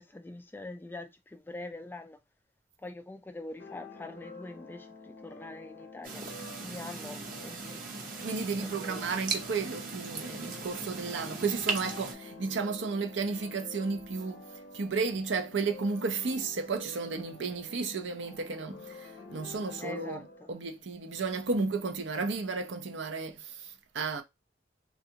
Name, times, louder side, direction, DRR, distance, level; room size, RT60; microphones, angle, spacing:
voice 1, 0.0-2.2 2.8-6.2 6.6-7.8 8.5-9.2 19.8-20.5, left 2 dB, 10° left, 0.3 m, -44 dB
sound 1, 3.6-20.8, left 3 dB, 65° left, 0.7 m, -49 dB
sound 2, 6.0-12.1, right 4 dB, 50° right, 0.8 m, -38 dB
voice 2, 8.2-14.4 14.7-24.2, right 4 dB, 75° right, 0.7 m, -33 dB
3.4 x 2.5 x 2.8 m
head